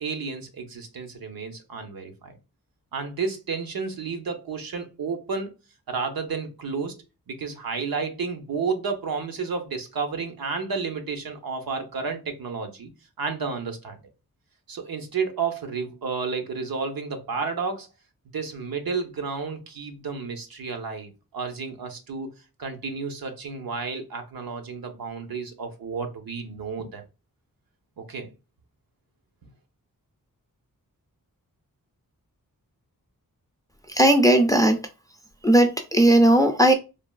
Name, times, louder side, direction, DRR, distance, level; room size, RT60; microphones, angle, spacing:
voice 1, 0.0-2.3 2.9-5.5 5.9-12.9 13.2-14.0 14.7-17.9 18.3-22.3 22.6-27.0 28.0-28.3, right 5 dB, 75° right, 0.7 m, -31 dB
voice 2, 33.9-34.8 35.4-36.7, right 1 dB, 10° left, 0.4 m, -17 dB
3.2 x 2.3 x 2.2 m
wide cardioid pair, 70°, 35 cm